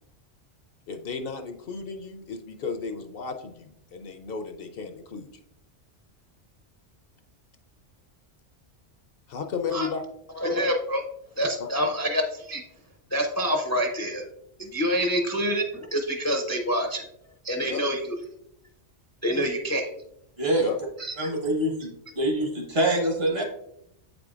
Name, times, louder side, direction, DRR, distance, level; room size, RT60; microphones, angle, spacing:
voice 1, 0.9-5.3 9.3-10.0 11.6-11.9 17.6-17.8 20.5-20.8, left 5 dB, 65° left, 6 dB, 0.7 m, -34 dB
voice 2, 10.4-11.0 11.4-12.6 13.1-14.3 14.6-17.0 17.4-18.0 19.2-19.9 21.0-21.3, equal, 20° left, 3 dB, 0.4 m, -26 dB
voice 3, 20.4-20.7 21.2-23.4, right 1 dB, 60° right, 1 dB, 1.4 m, -25 dB
7.9 x 4.9 x 2.4 m, 0.76 s
omnidirectional pair, 1.2 m